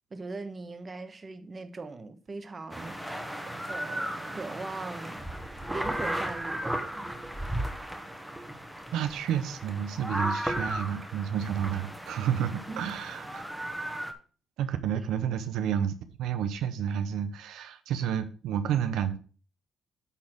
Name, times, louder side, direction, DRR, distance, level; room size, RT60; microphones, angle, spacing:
voice 1, 0.1-3.3 3.7-5.3 5.7-7.1 12.7-12.9, right 3 dB, 30° right, 1.1 m, -40 dB
sound 1, 2.2-7.0 7.4-9.9 10.3-11.1 11.6-11.7 11.9-12.4 12.7-13.0, right 4 dB, 50° right, 2.2 m, -58 dB
sound 2, 2.7-14.1, right 1 dB, 5° right, 1.3 m, -35 dB
voice 2, 8.9-13.4 14.6-19.2, right 9 dB, 85° right, 0.7 m, -30 dB
8.9 x 4.2 x 6.1 m
cardioid pair, 90°, 0 cm